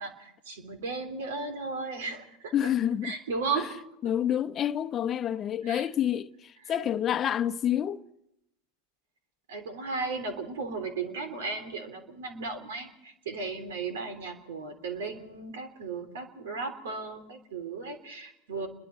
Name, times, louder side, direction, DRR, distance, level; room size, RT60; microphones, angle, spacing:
voice 1, 0.0-2.7 3.0-3.8 5.6-5.8 9.5-18.7, right 4 dB, 75° right, 3.4 m, -35 dB
voice 2, 2.5-3.1 3.5-3.6 4.0-8.0, left 10 dB, 40° left, 0.9 m, -28 dB
27.5 x 22.0 x 4.5 m
hypercardioid pair, 85°, 0 cm